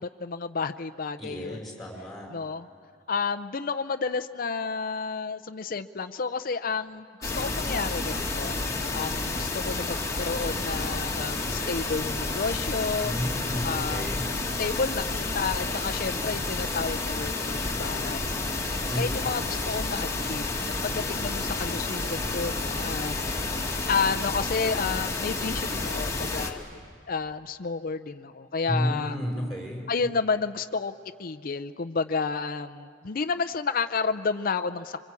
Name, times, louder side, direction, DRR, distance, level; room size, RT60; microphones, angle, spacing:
voice 1, 0.0-1.6 2.3-2.7 3.1-8.6 8.9-13.2 13.6-14.2 14.6-18.6 19.0-20.5 20.8-23.2 23.9-26.6 27.1-29.2 29.9-35.0, left 4 dB, 50° left, 9 dB, 0.6 m, -31 dB
voice 2, 1.2-2.3 13.0-14.2 18.9-19.3 28.7-29.8, equal, ahead, 0 dB, 5.3 m, -32 dB
sound 1, 7.2-26.5, left 3 dB, 15° left, 1.8 m, -30 dB
27.0 x 24.5 x 8.4 m, 2.2 s
head